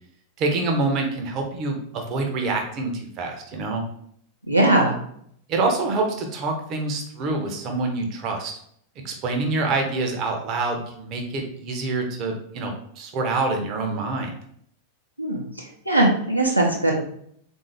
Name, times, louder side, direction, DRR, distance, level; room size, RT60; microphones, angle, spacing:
voice 1, 0.4-3.8 5.5-8.5 9.0-14.3, right 3 dB, 35° right, 3 dB, 0.7 m, -26 dB
voice 2, 4.5-4.9 15.2-16.9, right 1 dB, 90° right, -2 dB, 0.8 m, -20 dB
3.6 x 2.6 x 3.3 m, 0.66 s
figure-of-eight pair, 90°, 0 cm